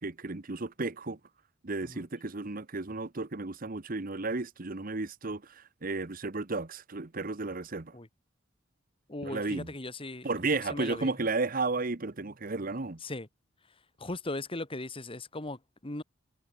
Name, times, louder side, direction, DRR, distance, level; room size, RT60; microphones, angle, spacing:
voice 1, 0.0-1.2 1.6-7.9 9.2-9.7 10.2-13.0, right 3 dB, 45° right, 1.1 m, -33 dB
voice 2, 9.1-10.3 10.5-11.1 13.0-13.3 14.0-16.0, left 2 dB, 30° left, 1.7 m, -38 dB
head